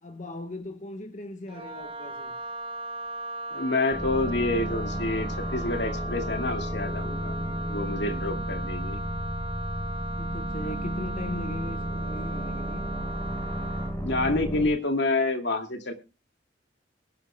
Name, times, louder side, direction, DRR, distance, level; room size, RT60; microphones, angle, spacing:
voice 1, 0.0-2.4 10.2-12.9, left 2 dB, 40° left, 1.4 m, -38 dB
Wind instrument woodwind instrument, 1.5-14.0, right 1 dB, 30° right, 1.1 m, -37 dB
voice 2, 3.5-7.3 7.7-9.0 10.6-10.7 14.0-15.9, left 2 dB, 65° left, 2.3 m, -28 dB
sound 1, 3.9-14.7, equal, 10° left, 4.0 m, -33 dB
22.5 x 11.0 x 2.2 m
head